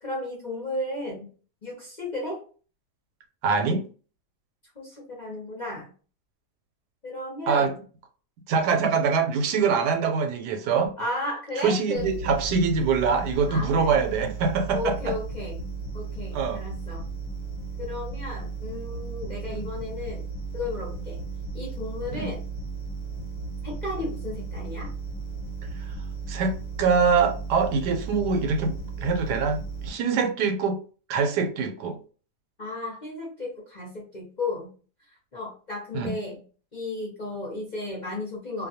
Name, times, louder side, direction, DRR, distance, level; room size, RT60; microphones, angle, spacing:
voice 1, 0.0-1.3 1.6-2.4 4.8-5.9 7.0-7.8 11.0-12.1 13.5-14.0 14.7-15.6 15.9-17.1 17.8-20.3 20.5-21.2 21.5-22.4 23.6-24.9 32.6-34.7 35.3-36.4 36.7-38.7, left 2 dB, 40° left, 0.6 m, -34 dB
voice 2, 3.4-3.8 7.5-7.7 8.5-10.9 11.6-15.1 16.3-16.6 19.5-19.7 22.1-22.3 25.8-25.9 26.3-30.8 31.1-32.0 35.9-36.1, right 5 dB, 85° right, 1.2 m, -24 dB
sound 1, 12.0-29.9, right 4 dB, 60° left, 1.0 m, -35 dB
2.5 x 2.2 x 2.7 m
omnidirectional pair, 1.7 m